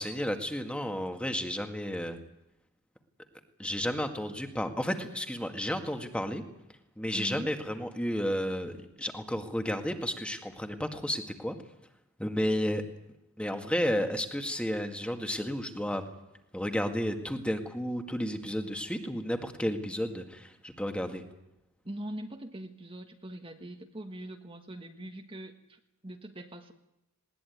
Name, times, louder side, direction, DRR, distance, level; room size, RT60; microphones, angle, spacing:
voice 1, 0.0-2.2 3.6-6.4 7.0-11.6 12.2-12.8 13.4-16.0 16.5-21.2, equal, 5° left, 5 dB, 1.9 m, -32 dB
voice 2, 7.1-7.6 21.8-26.7, right 1 dB, 25° right, 5 dB, 1.5 m, -42 dB
20.5 x 19.5 x 9.4 m, 0.88 s
head